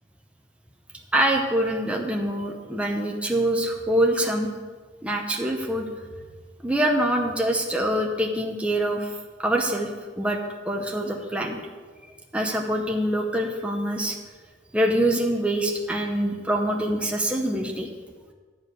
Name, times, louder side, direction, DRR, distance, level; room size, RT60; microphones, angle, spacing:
voice 1, 1.1-4.5 5.0-5.9 6.6-9.1 9.4-9.9 10.2-10.4 10.6-11.6 12.3-14.2 14.7-17.9, right 1 dB, 5° right, 0 dB, 0.8 m, -24 dB
11.0 x 4.8 x 8.0 m, 1.4 s
head